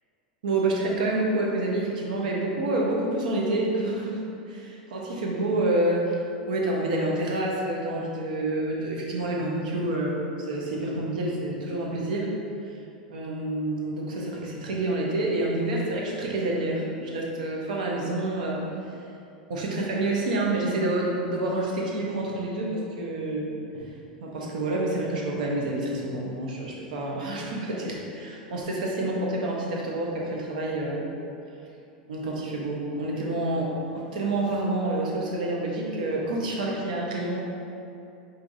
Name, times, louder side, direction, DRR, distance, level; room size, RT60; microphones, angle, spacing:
voice 1, 0.4-6.2 6.5-10.2 10.5-12.3 13.1-18.6 19.5-23.9 24.2-31.0 32.1-37.4, right 2 dB, 70° right, -2 dB, 0.7 m, -28 dB
4.5 x 2.7 x 2.6 m, 2.7 s
hypercardioid pair, 95°, 5 cm